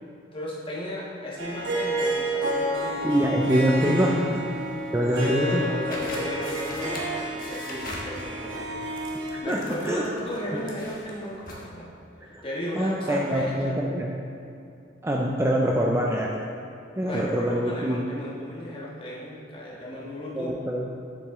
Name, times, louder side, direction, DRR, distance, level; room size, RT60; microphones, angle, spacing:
voice 1, 0.3-3.0 3.8-4.2 5.2-9.1 9.4-11.9 12.2-13.7 16.9-20.6, left 1 dB, 25° left, -6 dB, 1.4 m, -35 dB
Harp, 1.4-9.4, right 1 dB, 70° right, 1.1 m, -30 dB
voice 2, 3.0-4.4 4.9-5.6 9.3-10.0 10.5-10.6 12.3-12.4 12.7-14.2 15.0-16.3 17.0-18.0 20.3-20.9, equal, 15° right, -1 dB, 0.4 m, -24 dB
sound 1, 5.9-11.7, left 1 dB, 45° left, 1.2 m, -41 dB
7.2 x 6.6 x 3.6 m, 2.6 s
head